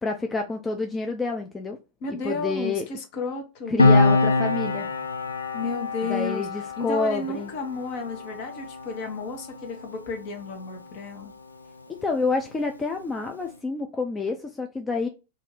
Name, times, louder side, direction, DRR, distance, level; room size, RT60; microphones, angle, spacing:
voice 1, 0.0-1.8 2.1-2.9 3.7-4.9 6.0-7.5 11.9-15.1, left 3 dB, 15° left, 0.4 m, -28 dB
voice 2, 2.0-4.0 5.5-6.5 6.8-11.3, left 3 dB, 45° left, 0.9 m, -32 dB
Piano, 3.8-10.8 11.1-11.3, left 3 dB, 80° left, 0.4 m, -25 dB
2.6 x 2.5 x 3.2 m
figure-of-eight pair, 90°, 0 cm